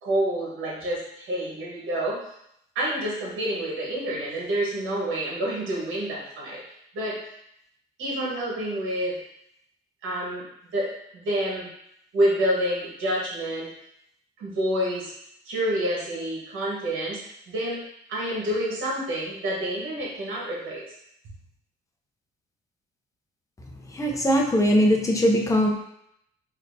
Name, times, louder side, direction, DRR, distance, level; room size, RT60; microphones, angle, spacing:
voice 1, 0.0-2.2 2.7-6.6 6.9-7.2 8.0-9.1 10.0-10.4 10.7-11.7 12.1-13.7 14.4-15.1 15.4-17.2 17.5-17.8 18.1-20.8, right 1 dB, 80° right, -5 dB, 1.4 m, -28 dB
voice 2, 23.9-25.7, equal, 15° left, 0 dB, 0.7 m, -20 dB
4.2 x 2.7 x 2.7 m, 0.75 s
cardioid pair, 90°, 20 cm